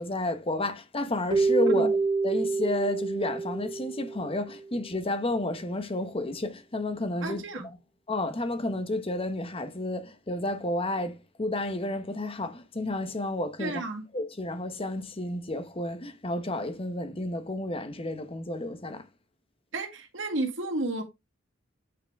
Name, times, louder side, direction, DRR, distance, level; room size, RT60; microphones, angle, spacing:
voice 1, 0.0-2.0 2.2-7.6 8.1-13.8 14.1-19.0, left 2 dB, 30° left, 1.0 m, -31 dB
Keyboard (musical), 1.3-4.6, right 4 dB, 25° right, 0.5 m, -27 dB
voice 2, 7.2-7.7 13.6-14.1 19.7-21.0, right 2 dB, 70° right, 1.8 m, -32 dB
8.5 x 4.2 x 3.5 m
head